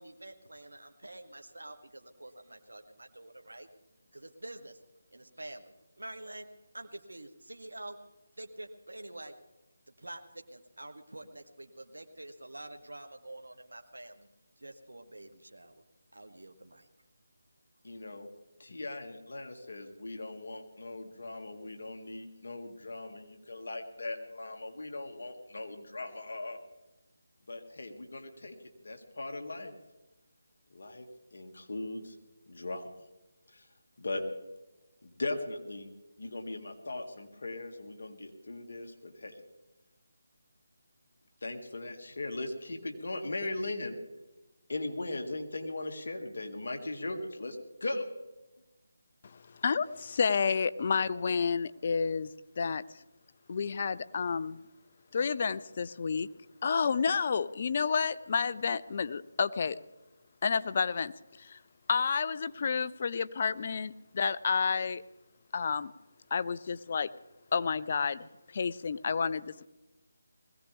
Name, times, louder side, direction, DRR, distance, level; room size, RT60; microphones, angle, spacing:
voice 1, 0.0-3.7 4.1-4.8 5.1-6.5 6.7-8.0 8.4-9.3 10.0-14.3 14.6-15.8 16.1-16.9, right 1 dB, 90° right, 5 dB, 1.3 m, -47 dB
voice 2, 17.8-18.3 18.6-26.6 27.5-28.6 28.8-29.7 30.7-32.2 32.5-32.9 33.5-33.7 34.0-34.3 35.0-35.9 36.2-39.4 41.4-44.0 44.7-48.1, left 2 dB, 65° left, 3 dB, 2.3 m, -39 dB
voice 3, 49.2-53.0 53.5-54.6 55.1-56.3 56.6-59.8 60.4-61.6 61.9-65.0 65.5-65.9 66.3-67.1 67.5-69.7, left 5 dB, 40° left, 15 dB, 0.6 m, -30 dB
21.0 x 16.5 x 3.5 m, 1.1 s
figure-of-eight pair, 160°, 0 cm